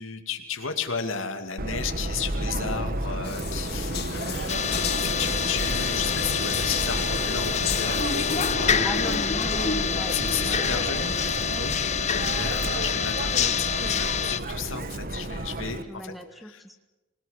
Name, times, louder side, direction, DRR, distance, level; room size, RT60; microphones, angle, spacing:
voice 1, 0.0-4.6 5.0-9.3 10.1-16.1 16.4-16.6, left 6 dB, 75° left, 5 dB, 2.5 m, -34 dB
Subway metro underground, 1.6-15.8, right 1 dB, 45° right, 1.4 m, -31 dB
sound 1, 3.2-8.6, left 8 dB, 55° left, 2.1 m, -34 dB
sound 2, 4.5-14.4, left 7 dB, 35° left, 0.8 m, -27 dB
voice 2, 8.8-10.7 12.1-12.7 15.9-16.8, equal, ahead, 8 dB, 1.3 m, -38 dB
26.5 x 18.5 x 8.2 m, 1.1 s
head